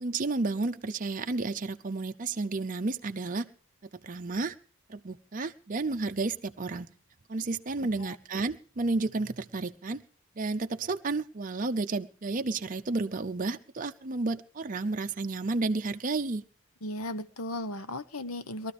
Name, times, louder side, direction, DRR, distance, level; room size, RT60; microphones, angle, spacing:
voice 1, 0.0-3.5 4.0-4.5 4.9-6.9 7.3-10.0 10.4-16.4, right 3 dB, 40° right, 0.6 m, -31 dB
voice 2, 7.8-8.2 16.8-18.7, left 1 dB, 85° left, 1.0 m, -36 dB
21.5 x 13.0 x 3.4 m
head